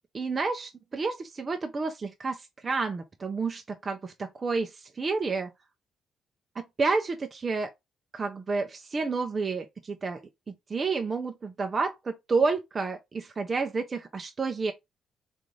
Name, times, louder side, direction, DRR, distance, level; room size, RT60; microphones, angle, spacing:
voice 1, 0.1-5.5 6.8-7.7 8.1-10.2 10.7-14.7, right 4 dB, 35° right, 0.5 m, -30 dB
3.8 x 2.5 x 3.1 m
cardioid pair, 90°, 0 cm